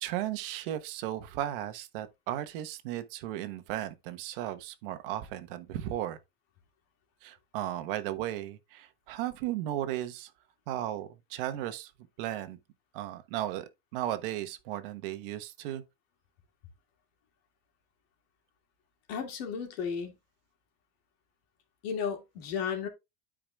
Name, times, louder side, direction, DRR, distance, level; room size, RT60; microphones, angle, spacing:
voice 1, 0.0-6.2 7.2-10.3 10.7-11.9 12.2-12.6 12.9-15.8, right 12 dB, 65° right, 1.1 m, -35 dB
voice 2, 19.1-20.1 21.8-22.9, left 7 dB, 80° left, 2.5 m, -33 dB
12.5 x 5.0 x 2.3 m
cardioid pair, 175°, 30 cm